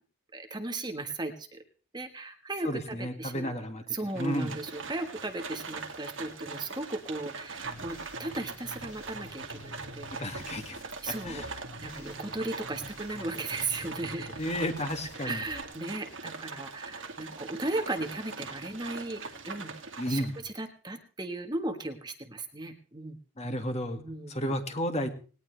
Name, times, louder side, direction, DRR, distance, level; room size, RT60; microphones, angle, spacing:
voice 1, 0.3-1.6 1.9-3.5 3.9-10.6 11.0-14.4 15.2-19.7 20.1-23.2 24.0-24.5, right 2 dB, 20° right, 6 dB, 1.4 m, -36 dB
voice 2, 2.6-4.6 10.2-10.8 11.2-11.5 14.4-15.4 20.0-20.3 23.4-24.0 24.3-25.1, equal, 30° left, 6 dB, 2.1 m, -32 dB
Livestock farm animals working animals, 4.1-20.5, right 4 dB, 60° right, 2.3 m, -42 dB
sound 1, 7.6-15.6, left 1 dB, 80° left, 1.7 m, -48 dB
19.5 x 18.5 x 3.4 m, 0.39 s
head